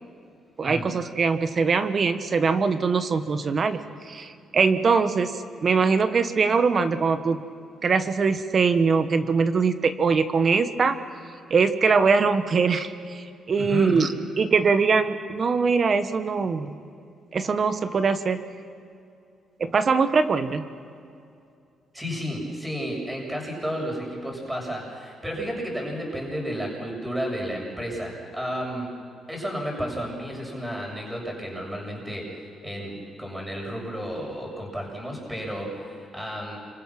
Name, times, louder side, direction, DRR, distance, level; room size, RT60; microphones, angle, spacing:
voice 1, 0.6-3.8 4.1-7.4 7.8-11.0 11.5-14.1 14.4-16.8 17.3-18.4 19.6-20.6, right 5 dB, 45° right, 10 dB, 1.4 m, -22 dB
voice 2, 13.6-14.1 21.9-28.9 29.3-32.2 32.6-36.6, equal, 5° right, -1 dB, 7.3 m, -32 dB
28.5 x 25.5 x 6.1 m, 2.5 s
cardioid pair, 90°, 0 cm